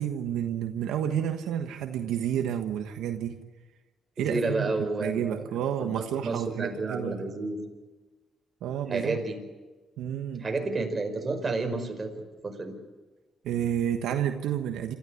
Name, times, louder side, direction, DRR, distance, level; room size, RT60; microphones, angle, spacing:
voice 1, 0.0-3.4 4.2-4.7 5.0-7.2 8.6-9.2 10.0-10.5 13.4-14.9, right 9 dB, 85° right, 5 dB, 1.3 m, -30 dB
voice 2, 4.2-5.5 5.8-7.7 8.9-9.4 10.4-12.1 12.4-12.8, right 3 dB, 30° right, 4 dB, 5.3 m, -31 dB
27.0 x 14.5 x 9.7 m, 1.2 s
cardioid pair, 90°, 0 cm